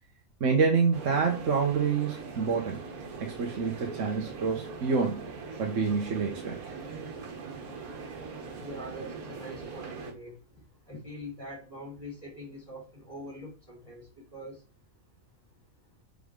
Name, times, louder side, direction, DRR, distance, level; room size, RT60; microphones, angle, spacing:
voice 1, 0.4-2.8 3.2-5.2 5.6-6.6, right 5 dB, 60° right, 0 dB, 1.4 m, -27 dB
sound 1, 0.9-10.1, right 4 dB, 90° right, 1.7 m, -41 dB
voice 2, 8.2-14.6, equal, 15° right, -2 dB, 3.2 m, -44 dB
7.6 x 3.8 x 3.7 m, 0.32 s
omnidirectional pair, 1.5 m